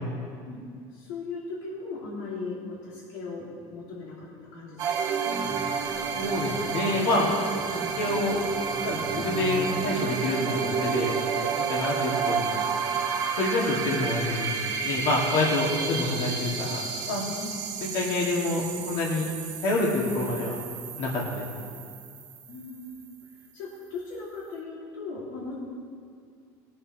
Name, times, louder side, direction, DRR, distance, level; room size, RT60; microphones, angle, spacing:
voice 1, 0.9-4.3 4.5-5.1 17.4-17.6 22.5-23.0 23.5-25.6, left 3 dB, 90° left, -7 dB, 2.9 m, -38 dB
sound 1, 4.8-23.3, right 6 dB, 45° right, 1.2 m, -31 dB
voice 2, 6.1-7.3 8.0-8.4 8.8-11.1 11.7-12.6 13.4-16.8 17.1-17.2 17.9-19.2 19.6-19.9 20.1-20.6 21.0-21.4, left 2 dB, 65° left, -4 dB, 2.5 m, -27 dB
22.0 x 7.7 x 3.3 m, 2.2 s
cardioid pair, 160°, 9 cm